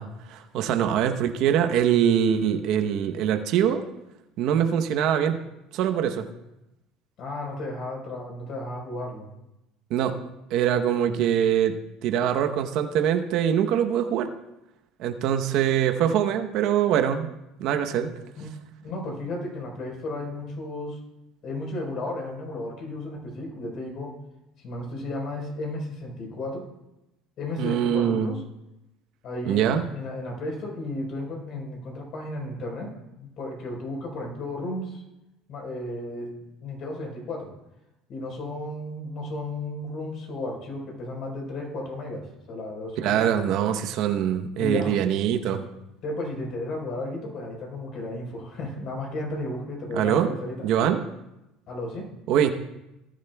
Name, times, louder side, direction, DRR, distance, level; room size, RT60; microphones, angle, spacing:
voice 1, 0.0-3.8 4.4-5.4 5.7-6.3 9.9-10.2 10.5-14.3 15.0-17.3 17.6-18.1 27.6-28.4 29.5-29.9 43.0-45.6 49.9-50.3 50.6-51.0 52.3-52.5, right 9 dB, 65° right, 7 dB, 0.9 m, -23 dB
voice 2, 7.2-9.3 18.4-18.5 18.8-21.0 21.4-24.1 24.6-26.6 27.4-28.4 29.2-35.0 35.5-36.3 36.6-37.5 38.1-43.2 44.6-45.0 46.0-50.7 51.7-52.1, left 2 dB, 55° left, 0 dB, 4.2 m, -34 dB
18.5 x 10.5 x 2.3 m, 0.92 s
supercardioid pair, 100°, 0 cm